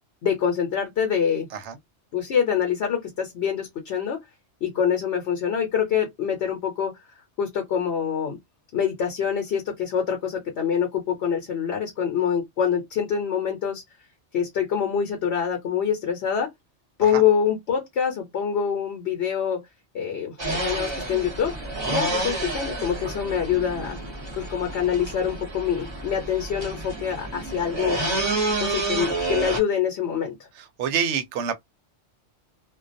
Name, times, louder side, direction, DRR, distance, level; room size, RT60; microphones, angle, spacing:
voice 1, 0.2-1.5 2.1-4.2 4.6-6.9 7.4-8.4 8.7-13.8 14.3-16.5 17.0-19.6 19.9-21.5 21.9-24.0 24.3-28.0 28.6-30.5, left 8 dB, 70° left, 0.9 m, -25 dB
sound 1, 20.4-29.6, right 2 dB, 25° right, 0.7 m, -29 dB
voice 2, 30.6-31.5, right 7 dB, 80° right, 0.9 m, -27 dB
2.2 x 2.1 x 2.5 m
omnidirectional pair, 1.2 m